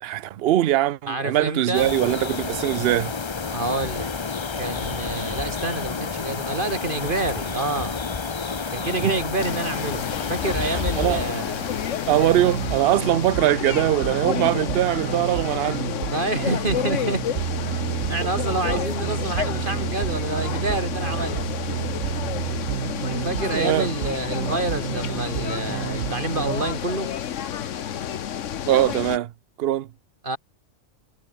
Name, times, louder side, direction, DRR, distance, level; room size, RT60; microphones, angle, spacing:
voice 1, 0.0-3.1 9.0-9.2 10.6-11.2 12.1-16.0 23.5-23.9 28.7-29.3 29.6-29.9, right 13 dB, 60° right, 0.7 m, -22 dB
voice 2, 1.1-1.9 3.5-4.1 4.6-8.0 8.7-11.8 16.1-17.2 18.1-21.6 23.2-27.1 30.2-30.4, right 2 dB, 40° right, 3.8 m, -28 dB
sound 1, 1.7-13.3, left 5 dB, 30° left, 0.5 m, -30 dB
sound 2, 9.4-29.2, left 9 dB, 70° left, 1.2 m, -30 dB
sound 3, 12.1-26.7, right 10 dB, 80° right, 1.2 m, -30 dB
omnidirectional pair, 1.4 m